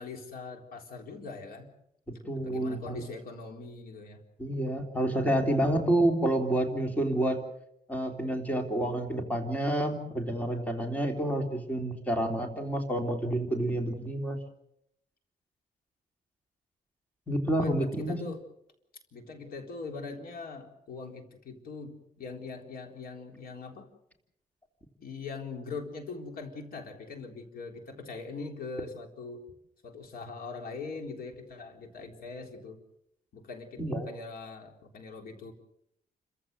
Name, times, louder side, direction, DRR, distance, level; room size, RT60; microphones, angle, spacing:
voice 1, 0.0-1.7 2.3-4.2 17.5-18.4 19.1-23.9 25.0-29.5 29.8-32.8 33.3-35.5, left 4 dB, 75° left, 4 dB, 3.9 m, -42 dB
voice 2, 2.3-3.0 4.4-7.4 7.9-14.4 17.3-18.2 33.8-34.1, right 1 dB, 10° left, 3 dB, 3.5 m, -29 dB
30.0 x 15.0 x 7.9 m, 0.78 s
wide cardioid pair, 145°, 16 cm